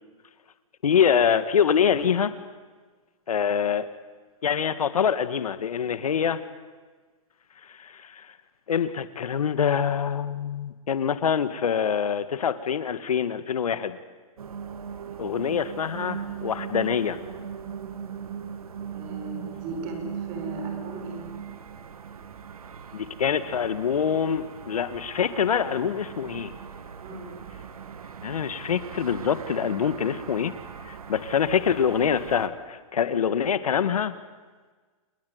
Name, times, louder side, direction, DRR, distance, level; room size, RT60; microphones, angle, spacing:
voice 1, 0.8-2.3 3.3-3.9 4.4-6.4 7.7-8.3 8.7-14.0 15.2-17.2 22.9-26.5 28.2-30.5 30.9-34.2, left 7 dB, 90° left, 12 dB, 1.8 m, -25 dB
sound 1, 14.4-32.5, right 7 dB, 85° right, 2.6 m, -39 dB
voice 2, 18.9-21.3 27.0-27.4, right 2 dB, 30° right, 3 dB, 6.8 m, -37 dB
29.0 x 19.5 x 9.5 m, 1.4 s
hypercardioid pair, 160°, 18 cm